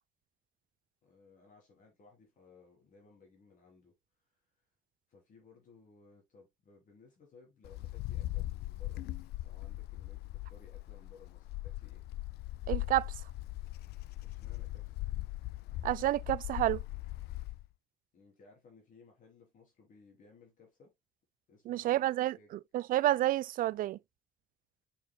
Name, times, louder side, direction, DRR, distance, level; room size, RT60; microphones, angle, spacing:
voice 1, 1.0-4.7 5.1-12.0 14.2-14.9 18.1-20.9 21.5-22.5, left 4 dB, 50° left, 3.7 m, -60 dB
Wind, 7.6-17.7, left 17 dB, 75° left, 0.4 m, -40 dB
voice 2, 12.7-13.1 15.8-16.8 21.7-22.4 22.7-24.0, right 14 dB, 55° right, 0.4 m, -29 dB
6.8 x 6.7 x 2.2 m
cardioid pair, 110°, 17 cm